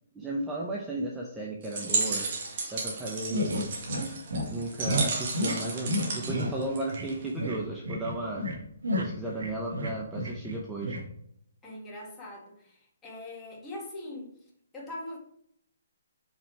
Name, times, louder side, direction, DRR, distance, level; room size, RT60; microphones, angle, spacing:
voice 1, 0.1-2.2 2.6-3.7 4.5-8.5 9.0-11.0, right 2 dB, 10° right, -3 dB, 0.8 m, -34 dB
sound 1, 1.6-7.3, right 4 dB, 45° right, 2.1 m, -33 dB
sound 2, 3.3-4.1 4.3-4.4 4.8-5.1 5.3-5.5 5.8-6.5 6.9-7.1 7.4-7.6 7.9-8.6 8.8-10.6 10.8-11.0, equal, 85° right, 1.9 m, -30 dB
voice 2, 11.6-14.3 14.7-15.2, left 1 dB, 10° left, -3 dB, 1.8 m, -41 dB
5.4 x 5.0 x 4.6 m, 0.69 s
hypercardioid pair, 155°, 0 cm